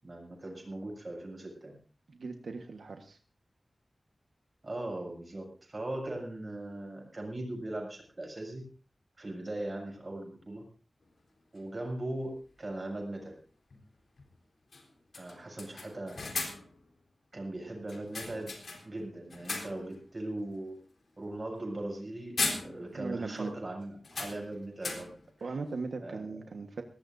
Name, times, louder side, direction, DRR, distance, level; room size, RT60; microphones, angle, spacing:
voice 1, 0.0-1.8 4.6-8.6 9.2-10.7 11.5-13.4 15.1-16.2 17.3-18.5 18.8-20.8 21.2-25.1 25.4-25.6 26.0-26.4, right 1 dB, 35° right, 1 dB, 7.5 m, -39 dB
voice 2, 2.1-3.2 22.9-23.5 25.4-26.8, right 4 dB, 85° right, 5 dB, 1.4 m, -38 dB
sound 1, 11.6-11.7 13.7-13.8 14.2-14.3 14.7-14.9 15.1-16.8 17.9-19.0 19.3-20.0 20.4-20.6 21.9-22.1 22.4-23.1 23.4-23.5 24.0-25.3, left 3 dB, 75° left, 3.9 m, -37 dB
21.0 x 18.5 x 2.7 m, 0.37 s
wide cardioid pair, 105°, 0 cm